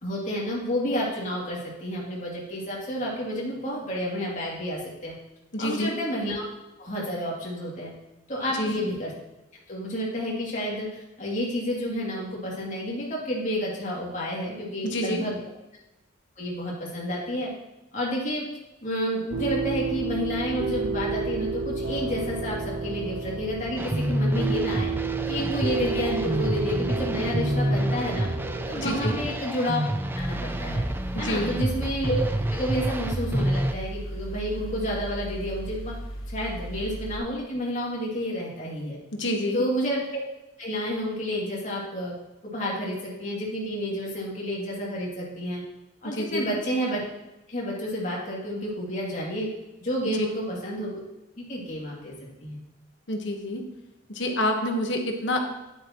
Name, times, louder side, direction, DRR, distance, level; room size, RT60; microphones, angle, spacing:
voice 1, 0.0-5.1 5.6-6.4 6.8-7.9 8.3-9.1 9.7-10.9 11.2-15.4 16.4-17.5 17.9-18.4 18.8-24.9 25.3-28.3 28.7-29.8 30.1-30.8 31.2-32.2 32.5-35.9 36.3-39.0 39.5-40.2 40.6-42.1 42.5-45.6 46.0-47.0 47.5-49.5 49.8-50.9 51.4-52.1 52.4-52.6, equal, 40° left, -4 dB, 2.7 m, -30 dB
voice 2, 5.5-5.9 8.5-8.8 14.8-15.2 28.8-29.2 31.1-31.5 39.1-39.6 46.0-46.5 50.2-50.3 53.1-53.6 54.1-55.5, left 1 dB, 60° left, 3 dB, 1.3 m, -27 dB
sound 1, 19.3-29.4, right 4 dB, 85° right, 0.8 m, -31 dB
sound 2, 23.8-33.7, right 1 dB, 10° right, 0.4 m, -28 dB
Mechanical fan, 30.2-37.2, right 1 dB, 85° left, 1.1 m, -36 dB
10.0 x 8.7 x 3.0 m, 1.0 s
head